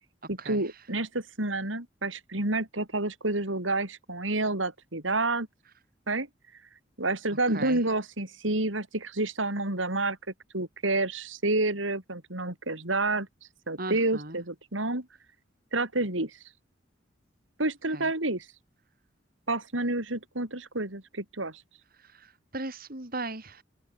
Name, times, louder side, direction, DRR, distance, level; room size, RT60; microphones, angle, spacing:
voice 1, 0.3-5.5 6.1-6.3 7.0-10.2 10.5-13.3 13.7-15.1 15.7-16.3 17.6-18.5 19.5-21.6, right 2 dB, 90° right, 5.1 m, -29 dB
voice 2, 13.8-14.4 17.9-18.1 22.0-23.6, right 2 dB, 50° right, 3.9 m, -37 dB
open air
head